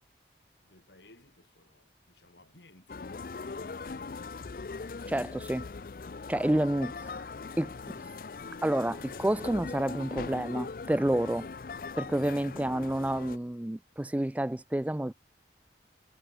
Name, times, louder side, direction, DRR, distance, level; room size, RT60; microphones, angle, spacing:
voice 1, 0.6-4.2 6.8-6.9, left 1 dB, 80° left, 6.5 m, -60 dB
sound 1, 2.9-13.4, left 4 dB, 50° left, 0.5 m, -40 dB
voice 2, 5.1-5.7 6.3-6.9 7.6-7.7 8.6-11.5 12.0-15.1, right 1 dB, 10° right, 0.3 m, -29 dB
head